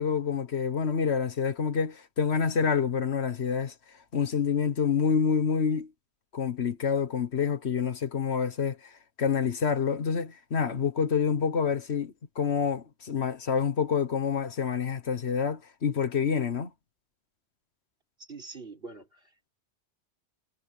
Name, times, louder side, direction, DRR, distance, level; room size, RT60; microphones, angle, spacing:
voice 1, 0.0-3.7 4.1-5.9 6.3-8.8 9.2-16.7, left 6 dB, 75° left, 1.6 m, -27 dB
voice 2, 18.2-19.5, right 3 dB, 60° right, 5.0 m, -45 dB
omnidirectional pair, 1.1 m